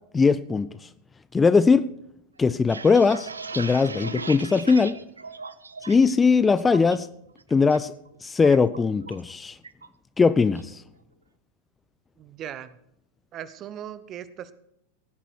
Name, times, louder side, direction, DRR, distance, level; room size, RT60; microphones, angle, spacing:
voice 1, 0.1-0.7 1.3-1.9 2.4-3.3 3.5-5.0 5.9-7.1 7.5-7.9 8.2-9.6 10.2-10.8, left 4 dB, 15° left, 14 dB, 0.5 m, -20 dB
sound 1, 2.4-6.1 6.4-7.0 7.4-7.8 8.0-9.3 9.6-9.9 10.2-10.7, right 4 dB, 75° right, 0.7 m, -38 dB
voice 2, 12.2-12.7 13.3-14.5, right 10 dB, 30° right, 15 dB, 1.1 m, -38 dB
18.0 x 10.0 x 4.6 m, 0.76 s
figure-of-eight pair, 90°, 0 cm